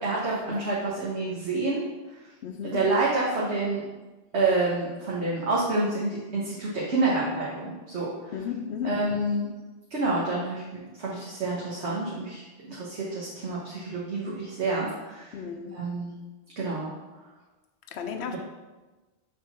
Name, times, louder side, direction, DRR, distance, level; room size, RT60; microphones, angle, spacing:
voice 1, 0.0-1.8 2.7-3.8 4.3-8.1 8.8-9.5 9.9-15.4 15.7-16.1 16.6-16.9, right 2 dB, 85° right, -5 dB, 1.4 m, -28 dB
voice 2, 2.4-2.8 8.3-8.9 15.3-15.8 17.9-18.4, left 7 dB, 80° left, 6 dB, 0.9 m, -34 dB
6.6 x 3.8 x 5.8 m, 1.2 s
omnidirectional pair, 1.1 m